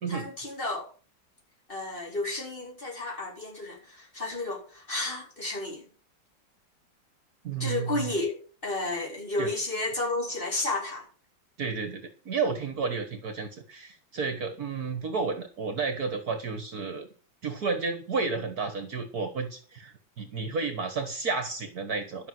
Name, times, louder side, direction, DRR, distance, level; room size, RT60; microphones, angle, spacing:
voice 1, 0.1-0.8 1.7-5.9 7.6-8.4 8.6-11.1, left 2 dB, 25° left, 4.7 m, -32 dB
voice 2, 7.4-8.1 9.4-9.5 11.6-17.1 17.4-22.3, right 4 dB, 55° right, 1.8 m, -32 dB
12.5 x 6.6 x 7.7 m
omnidirectional pair, 2.0 m